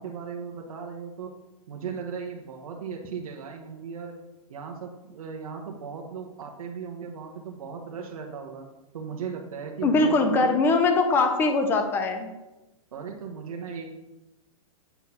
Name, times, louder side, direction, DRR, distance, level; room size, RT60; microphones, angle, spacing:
voice 1, 0.0-1.3 1.7-4.2 4.5-8.7 8.9-10.6 12.9-13.9, right 6 dB, 70° right, 1 dB, 1.2 m, -37 dB
voice 2, 9.8-12.3, left 3 dB, 10° left, 6 dB, 0.6 m, -22 dB
8.2 x 3.8 x 6.0 m, 1.0 s
hypercardioid pair, 165°, 18 cm